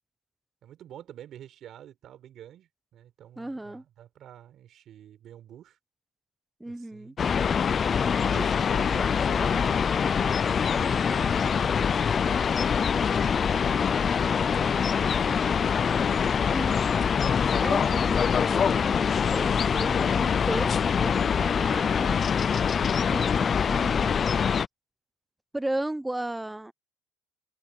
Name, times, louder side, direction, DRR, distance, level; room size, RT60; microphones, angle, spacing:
voice 1, 0.6-5.8 6.6-7.2 8.2-16.6, right 11 dB, 45° right, 4.7 m, -48 dB
voice 2, 3.4-3.8 6.6-7.1 16.5-16.8 17.5-22.2 23.0-24.2 25.5-26.7, right 1 dB, 5° right, 0.7 m, -35 dB
sound 1, 7.2-24.7, left 7 dB, 30° left, 0.4 m, -24 dB
cardioid pair, 135°, 0 cm